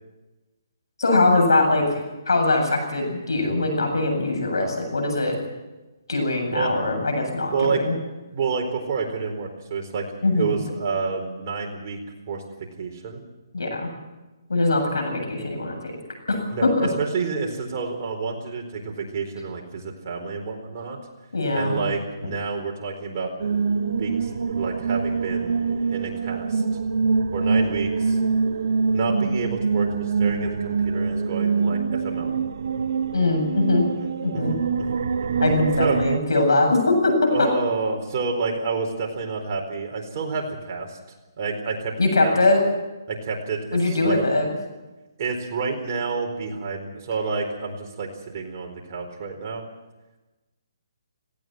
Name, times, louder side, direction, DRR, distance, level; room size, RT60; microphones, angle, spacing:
voice 1, 1.0-1.8 2.3-5.3 6.1-7.9 10.2-10.5 13.5-13.9 14.5-15.9 16.3-16.7 21.3-21.8 33.1-33.8 34.2-34.5 35.4-37.1 37.4-37.5 42.0-42.6 43.7-44.5, left 2 dB, 90° left, 4 dB, 7.9 m, -21 dB
voice 2, 7.5-7.8 8.3-10.1 10.3-12.0 12.3-12.4 12.8-13.2 16.5-21.0 21.5-23.3 24.0-25.6 25.9-26.6 27.3-28.2 28.9-32.3 34.3-35.4 35.8-36.0 37.3-41.0 41.4-41.9 42.2-42.4 43.1-44.2 45.2-49.6, right 4 dB, 35° right, 2 dB, 4.3 m, -29 dB
sound 1, 23.4-36.2, right 5 dB, 65° right, 1.0 m, -24 dB
18.0 x 17.0 x 9.4 m, 1.1 s
hypercardioid pair, 160°, 2 cm